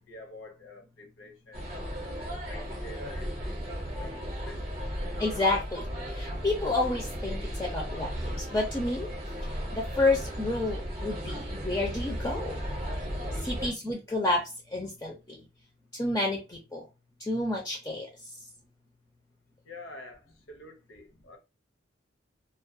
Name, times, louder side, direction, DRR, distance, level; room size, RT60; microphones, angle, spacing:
voice 1, 0.0-1.7 2.2-4.8 5.7-5.8 8.4-8.5 13.2-13.5 19.6-21.4, left 2 dB, 75° left, 0.7 m, -48 dB
sound 1, 1.5-13.7, equal, 35° right, 0.6 m, -35 dB
voice 2, 5.2-9.1 9.4-12.5 13.4-15.4 15.9-16.8 17.2-18.1, left 2 dB, 15° left, 0.4 m, -30 dB
2.3 x 2.2 x 2.5 m
head